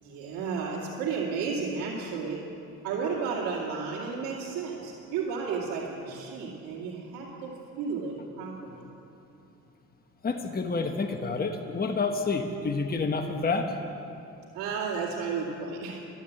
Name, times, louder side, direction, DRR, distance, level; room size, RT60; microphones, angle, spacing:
voice 1, 0.0-2.4 2.8-7.5 7.8-8.7 14.5-16.0, right 5 dB, 85° right, -6 dB, 2.5 m, -33 dB
voice 2, 10.2-13.7, left 4 dB, 25° left, 4 dB, 1.2 m, -28 dB
12.5 x 12.0 x 8.3 m, 2.7 s
cardioid pair, 85°, 34 cm